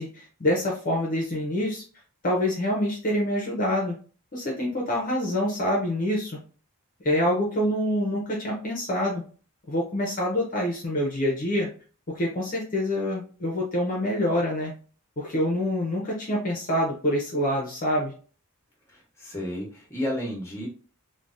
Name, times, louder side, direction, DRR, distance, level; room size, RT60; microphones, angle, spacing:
voice 1, 0.0-1.8 2.2-4.0 4.3-6.4 7.0-9.2 9.7-11.7 12.1-14.7 15.2-18.1, left 1 dB, 40° left, -2 dB, 0.6 m, -26 dB
voice 2, 18.9-20.7, left 1 dB, 10° left, -1 dB, 0.9 m, -32 dB
3.3 x 2.1 x 2.5 m, 0.39 s
head